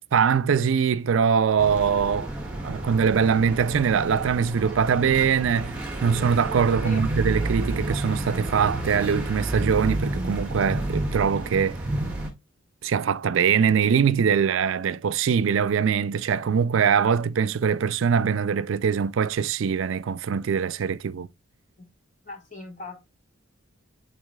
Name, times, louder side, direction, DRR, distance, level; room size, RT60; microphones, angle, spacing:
voice 1, 0.1-2.3 2.6-11.8 12.8-21.3, right 6 dB, 65° right, 0.4 m, -22 dB
sound 1, 1.6-12.3, right 1 dB, 5° right, 1.7 m, -30 dB
voice 2, 22.2-23.0, left 2 dB, 35° left, 1.7 m, -39 dB
11.0 x 4.0 x 2.2 m
head